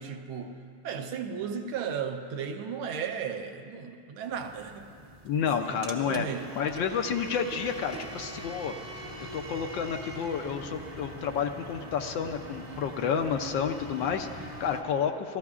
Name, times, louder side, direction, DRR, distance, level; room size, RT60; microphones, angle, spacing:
voice 1, 0.0-4.9 5.4-6.5, right 6 dB, 75° right, 5 dB, 1.6 m, -35 dB
sound 1, 4.3-14.8, right 1 dB, 35° right, 0.7 m, -42 dB
voice 2, 5.2-6.3 6.5-8.7 9.3-15.4, left 7 dB, 70° left, 5 dB, 1.2 m, -30 dB
29.5 x 14.5 x 2.4 m, 2.4 s
omnidirectional pair, 2.3 m